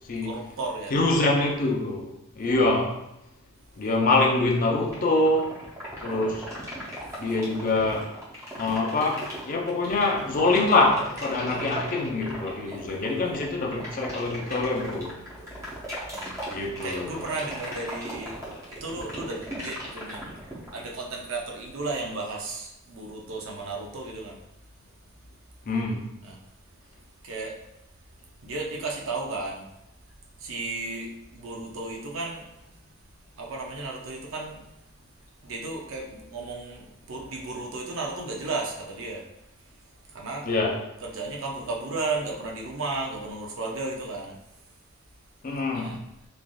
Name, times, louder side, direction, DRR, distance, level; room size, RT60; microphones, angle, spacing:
voice 1, 0.2-0.9 11.4-11.8 12.7-13.3 16.1-18.4 18.7-20.3 20.7-24.4 26.2-26.4 27.2-27.5 28.4-29.7 30.4-32.5 33.4-34.6 35.4-39.2 40.1-40.5 41.0-44.4 45.7-46.0, right 3 dB, 60° right, 0 dB, 0.5 m, -34 dB
voice 2, 0.9-3.0 3.8-5.5 6.0-6.5 7.2-8.1 8.6-15.2 16.5-17.1 25.7-26.0 40.5-40.8 45.4-46.0, left 2 dB, 40° left, 0 dB, 0.5 m, -25 dB
sound 1, 4.9-20.9, equal, 15° right, 0.7 m, -37 dB
3.2 x 2.5 x 2.2 m, 0.86 s
head